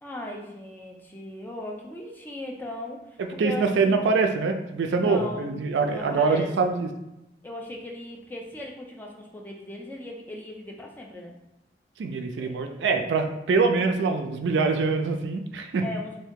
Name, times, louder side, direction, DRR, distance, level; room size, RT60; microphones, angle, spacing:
voice 1, 0.0-4.0 5.0-6.7 7.4-11.3 12.4-12.8 15.8-16.2, left 1 dB, 10° left, 0 dB, 0.4 m, -38 dB
voice 2, 3.2-6.9 12.0-15.8, right 4 dB, 90° right, 5 dB, 0.4 m, -24 dB
2.7 x 2.7 x 3.6 m, 0.90 s
head